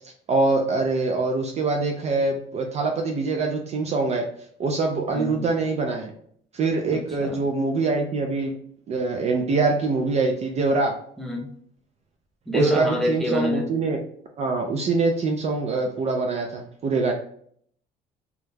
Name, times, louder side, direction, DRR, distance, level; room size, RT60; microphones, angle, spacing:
voice 1, 0.3-4.2 4.6-6.1 6.5-8.5 8.9-10.9 12.5-14.0 14.4-17.1, right 3 dB, 40° right, 3 dB, 0.4 m, -24 dB
voice 2, 5.1-5.5 6.9-7.4 11.2-11.5 12.5-13.7, equal, ahead, 0 dB, 0.7 m, -26 dB
2.3 x 2.1 x 3.1 m, 0.63 s
cardioid pair, 110°, 17 cm